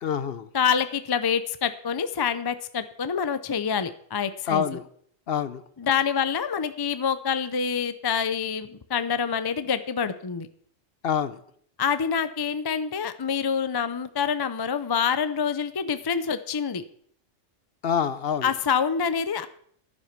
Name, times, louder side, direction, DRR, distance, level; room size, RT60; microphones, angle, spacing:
voice 1, 0.0-0.5 4.5-4.9 5.3-5.6 11.0-11.4 17.8-18.5, left 7 dB, 55° left, 14 dB, 0.8 m, -26 dB
voice 2, 0.5-4.7 5.8-10.5 11.8-16.8 18.4-19.5, left 7 dB, 35° left, 12 dB, 0.3 m, -26 dB
11.0 x 9.8 x 5.9 m, 0.62 s
omnidirectional pair, 1.3 m